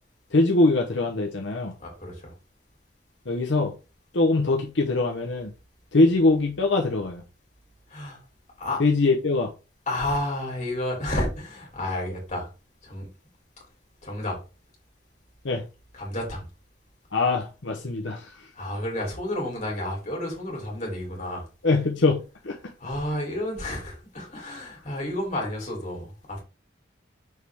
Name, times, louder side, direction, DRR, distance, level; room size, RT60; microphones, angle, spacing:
voice 1, 0.3-1.7 3.3-3.7 4.1-5.5 5.9-7.2 8.8-9.5 15.4-15.6 17.1-18.3 21.6-22.6, left 2 dB, 75° left, 0.9 m, -22 dB
voice 2, 1.8-2.3 7.9-8.2 8.6-8.8 9.9-12.5 12.8-13.1 14.0-14.4 15.9-16.4 18.5-21.5 22.8-26.4, left 1 dB, 40° left, 3.3 m, -31 dB
6.5 x 4.7 x 3.5 m
head